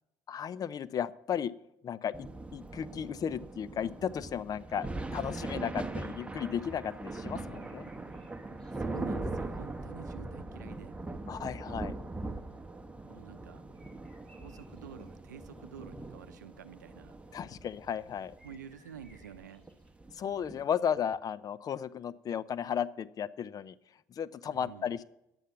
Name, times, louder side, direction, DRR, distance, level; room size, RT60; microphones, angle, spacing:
voice 1, 0.3-1.5 1.8-7.9 11.3-12.0 17.3-18.3 20.1-23.7 24.1-25.0, left 8 dB, 40° left, 17 dB, 0.6 m, -35 dB
sound 1, 2.1-20.6, right 2 dB, 15° right, 1.1 m, -41 dB
sound 2, 7.3-9.7 12.5-12.6 13.7-15.2 15.5-16.2 16.5-16.6 18.4-19.9, equal, 5° left, 4.7 m, -64 dB
voice 2, 8.8-11.0 13.1-13.6 14.3-17.2 18.4-19.6 24.4-24.9, right 8 dB, 90° right, 12 dB, 0.6 m, -49 dB
10.5 x 8.3 x 5.7 m, 0.88 s
hypercardioid pair, 60°, 9 cm